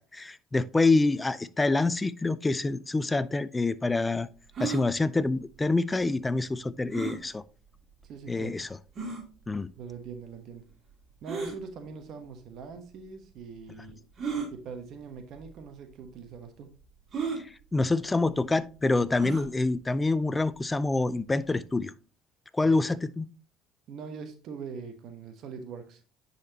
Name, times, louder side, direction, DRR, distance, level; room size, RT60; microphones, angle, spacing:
voice 1, 0.0-4.3 4.6-7.4 8.3-8.7 9.5-9.7 17.4-21.9 22.5-23.3, left 3 dB, 15° left, 0.5 m, -26 dB
sound 1, 4.5-4.8 6.9-7.2 8.0-8.1 9.0-9.2 11.2-11.6 12.6-12.7 14.2-14.5 15.4-15.6 15.8-15.9 17.1-17.4 19.1-19.5, right 5 dB, 40° right, 2.6 m, -33 dB
voice 2, 8.1-8.6 9.8-10.6 11.2-14.0 14.5-16.8 22.6-22.9 23.9-26.0, right 5 dB, 60° right, 1.1 m, -42 dB
9.7 x 4.2 x 2.8 m
supercardioid pair, 75°, 0 cm